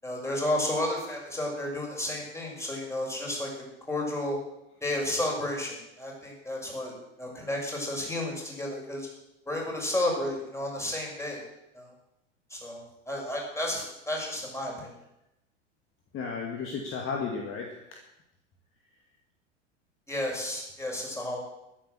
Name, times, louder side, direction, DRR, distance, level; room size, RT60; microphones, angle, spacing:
voice 1, 0.0-3.5 3.9-4.4 4.8-6.9 7.2-9.1 9.5-11.4 11.7-11.9 12.5-14.9 20.1-21.4, left 1 dB, 5° left, -1 dB, 6.1 m, -32 dB
voice 2, 16.1-17.8, left 5 dB, 35° left, 1 dB, 2.3 m, -33 dB
13.5 x 10.0 x 7.6 m, 0.89 s
hypercardioid pair, 90°, 36 cm